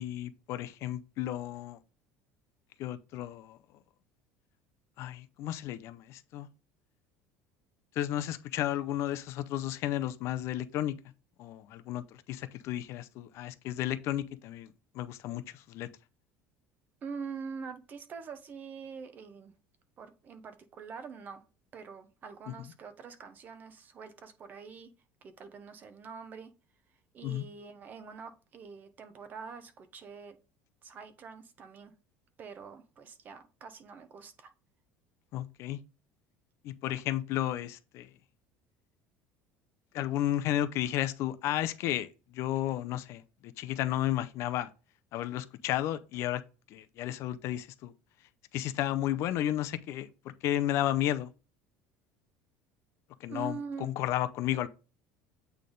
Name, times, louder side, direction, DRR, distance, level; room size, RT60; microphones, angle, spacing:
voice 1, 0.0-1.8 2.8-3.6 5.0-6.5 8.0-10.9 11.4-15.9 27.2-27.4 35.3-35.8 36.6-38.1 39.9-44.7 45.1-46.4 46.7-47.9 48.5-50.1 50.4-51.3 53.2-54.7, left 13 dB, 50° left, 0.5 m, -33 dB
voice 2, 17.0-19.5 20.0-21.4 21.7-24.9 25.2-26.5 27.1-30.4 30.8-31.9 32.4-34.5 53.3-53.9, right 5 dB, 30° right, 0.9 m, -44 dB
8.5 x 3.4 x 3.9 m
cardioid pair, 160°, 6 cm